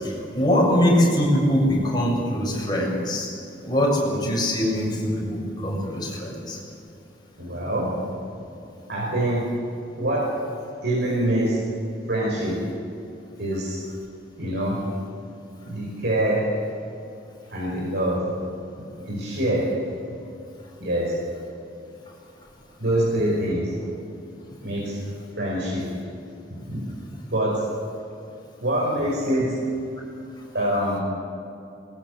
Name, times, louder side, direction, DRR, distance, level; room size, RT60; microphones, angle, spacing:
voice 1, 0.3-3.3 3.6-6.6, equal, 25° left, -2 dB, 7.4 m, -22 dB
voice 2, 7.4-8.1 8.9-9.6 10.0-10.4 10.8-11.6 12.1-12.6 13.4-13.8 14.4-14.8 15.6-16.5 17.5-18.3 19.1-19.7 20.8-21.1 22.8-23.7 24.6-25.0 25.4-25.9 26.7-26.8 27.3-27.7 28.6-29.6 30.5-31.0, right 1 dB, 75° right, -5 dB, 6.0 m, -24 dB
22.5 x 21.5 x 8.4 m, 2.6 s
head